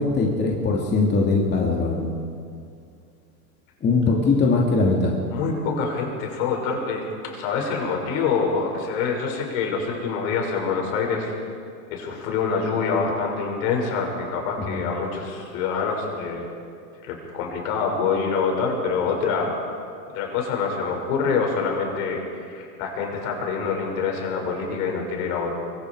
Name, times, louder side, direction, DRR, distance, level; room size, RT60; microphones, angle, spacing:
voice 1, 0.0-2.1 3.8-5.2 14.7-14.8, left 3 dB, 20° left, -2 dB, 2.6 m, -21 dB
voice 2, 5.3-11.3 11.9-16.5 17.0-19.5 20.1-25.5, left 5 dB, 60° left, 1 dB, 6.3 m, -26 dB
24.0 x 24.0 x 4.9 m, 2.4 s
supercardioid pair, 135°, 48 cm